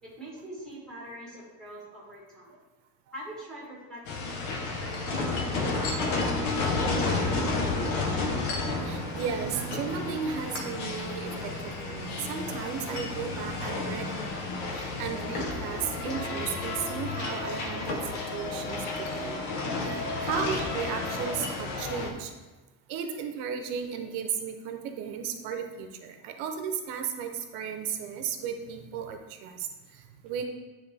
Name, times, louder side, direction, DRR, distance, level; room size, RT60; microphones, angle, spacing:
voice 1, 0.0-2.5 3.1-8.2 19.1-19.7 26.2-26.3, right 1 dB, ahead, -5 dB, 1.4 m, -45 dB
sound 1, 4.1-22.1, left 3 dB, 85° left, 1.0 m, -31 dB
sound 2, 4.6-15.1, right 9 dB, 60° right, 0.5 m, -44 dB
voice 2, 8.8-14.1 14.7-18.0 18.3-22.3 22.9-30.5, right 7 dB, 85° right, 6 dB, 0.8 m, -35 dB
9.4 x 3.3 x 3.3 m, 1.3 s
cardioid pair, 175°, 39 cm